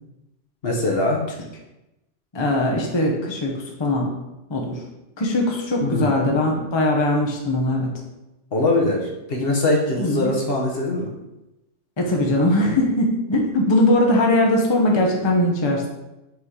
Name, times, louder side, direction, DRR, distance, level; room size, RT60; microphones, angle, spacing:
voice 1, 0.6-1.2 5.8-6.2 8.5-11.1, left 2 dB, 55° left, 0 dB, 1.1 m, -22 dB
voice 2, 2.3-4.1 4.5-4.8 5.2-8.0 10.0-10.3 12.0-15.9, left 1 dB, 25° left, 0 dB, 0.8 m, -20 dB
4.8 x 4.3 x 4.9 m, 0.96 s
omnidirectional pair, 1.2 m